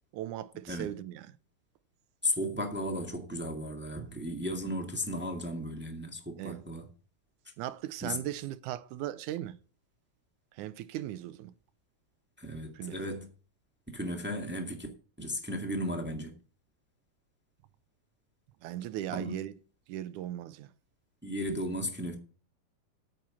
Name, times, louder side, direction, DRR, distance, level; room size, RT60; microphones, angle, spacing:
voice 1, 0.1-1.4 4.0-4.2 6.4-6.7 7.6-9.6 10.5-11.5 12.7-13.0 18.6-19.6 19.9-20.7, right 13 dB, 75° right, 1.9 m, -38 dB
voice 2, 2.2-6.8 8.0-8.2 12.4-13.2 13.9-14.9 15.2-16.3 19.1-19.3 21.2-22.2, left 1 dB, 5° right, 0.8 m, -35 dB
8.9 x 7.7 x 7.2 m
omnidirectional pair, 3.9 m